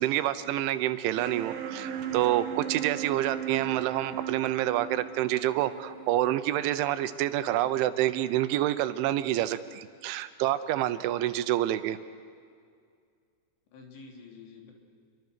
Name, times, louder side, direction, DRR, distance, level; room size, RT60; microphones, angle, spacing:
voice 1, 0.0-12.0, right 13 dB, 85° right, 12 dB, 3.2 m, -28 dB
sound 1, 1.1-7.1, right 10 dB, 60° right, 3.1 m, -37 dB
voice 2, 7.5-7.8 13.7-14.7, left 4 dB, 65° left, 1 dB, 5.2 m, -49 dB
28.0 x 24.0 x 6.8 m, 2.2 s
omnidirectional pair, 5.4 m